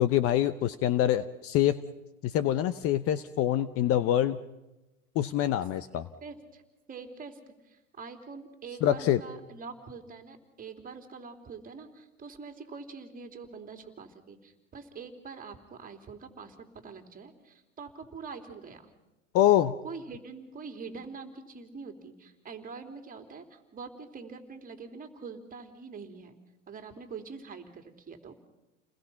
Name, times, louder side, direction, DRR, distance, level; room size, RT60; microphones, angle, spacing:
voice 1, 0.0-1.8 2.2-4.4 5.1-6.1 8.8-9.2 19.3-19.7, left 12 dB, 35° left, 14 dB, 0.9 m, -25 dB
voice 2, 5.9-6.6 6.9-18.9 19.8-26.4 26.7-28.3, right 5 dB, 20° right, 6 dB, 3.4 m, -44 dB
30.0 x 21.0 x 5.8 m, 1.0 s
hypercardioid pair, 100°, 38 cm